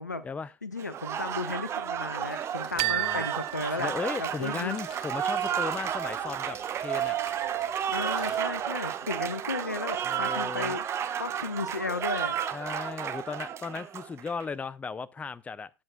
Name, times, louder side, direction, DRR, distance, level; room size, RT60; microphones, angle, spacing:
voice 1, 0.6-3.9 4.2-4.8 7.9-10.8 11.2-12.4, left 3 dB, 85° left, 0.8 m, -34 dB
Applause, 0.8-14.4, right 9 dB, 30° right, 1.1 m, -32 dB
Crumpling crinkling, 2.1-9.3, left 4 dB, 50° left, 2.6 m, -55 dB
voice 2, 2.7-3.3 3.8-7.2 10.0-10.8 12.5-15.7, left 5 dB, 15° left, 0.6 m, -36 dB
sound 1, 2.8-4.7, right 18 dB, 50° right, 0.5 m, -32 dB
18.5 x 8.0 x 2.2 m
figure-of-eight pair, 80°, 9 cm